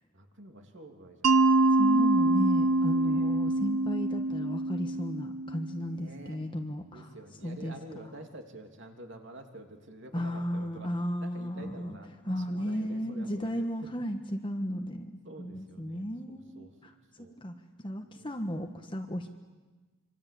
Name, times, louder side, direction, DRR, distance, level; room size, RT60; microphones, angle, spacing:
voice 1, 0.1-1.6 2.9-3.4 5.8-6.4 6.9-10.9 11.2-13.7 15.2-16.7 17.2-17.4 18.0-18.4, right 1 dB, 55° right, 3 dB, 3.1 m, -48 dB
Mallet percussion, 1.2-6.0, right 2 dB, 85° right, 1.0 m, -25 dB
voice 2, 1.8-7.1 7.4-8.1 10.1-12.0 12.3-16.9 17.2-17.5 17.8-19.4, equal, 20° left, 4 dB, 1.4 m, -34 dB
26.5 x 26.0 x 8.5 m, 1.3 s
head